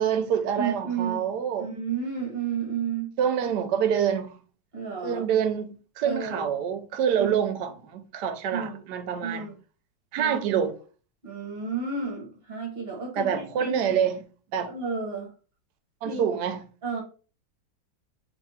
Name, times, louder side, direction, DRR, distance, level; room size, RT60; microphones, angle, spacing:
voice 1, 0.0-1.7 3.2-4.3 5.0-9.5 10.1-10.7 13.2-14.2 14.5-14.7 16.0-16.6, right 8 dB, 75° right, 1.2 m, -26 dB
voice 2, 0.6-1.2 1.6-3.1 4.7-5.3 6.0-6.5 7.2-7.3 8.5-8.8 9.2-9.5 10.2-10.4 11.2-13.8 14.6-15.3 16.0-16.2 16.8-17.0, right 5 dB, 35° right, 1.2 m, -32 dB
3.6 x 3.1 x 4.1 m
omnidirectional pair, 1.9 m